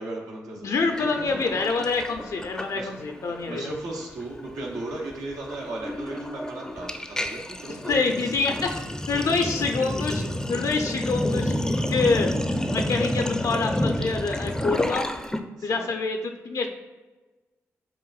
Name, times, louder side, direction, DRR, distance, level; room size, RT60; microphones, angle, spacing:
voice 1, 0.0-1.6 2.7-2.9 3.3-8.3 15.6-15.9, right 2 dB, 85° right, -1 dB, 0.9 m, -36 dB
voice 2, 0.6-3.7 7.7-8.7 9.1-11.5 11.9-12.3 12.7-15.1 15.6-16.7, left 4 dB, 65° left, 4 dB, 0.5 m, -26 dB
Sink (filling or washing), 0.9-3.2 3.4-3.7 4.0-15.4, left 1 dB, 10° left, 0.4 m, -30 dB
7.3 x 2.5 x 2.3 m, 1.2 s
supercardioid pair, 45°, 6 cm